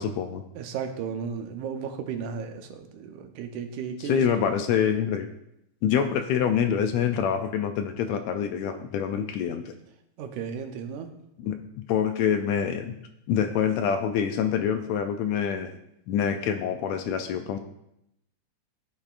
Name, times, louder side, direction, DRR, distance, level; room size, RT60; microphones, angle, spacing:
voice 1, 0.0-0.4 4.0-5.3 5.8-9.7 11.4-11.6 11.9-12.9 13.3-15.8 16.1-17.6, left 8 dB, 80° left, 7 dB, 1.7 m, -26 dB
voice 2, 0.6-4.5 10.2-11.1, right 6 dB, 90° right, 5 dB, 2.3 m, -34 dB
13.5 x 5.6 x 2.5 m, 0.80 s
omnidirectional pair, 3.4 m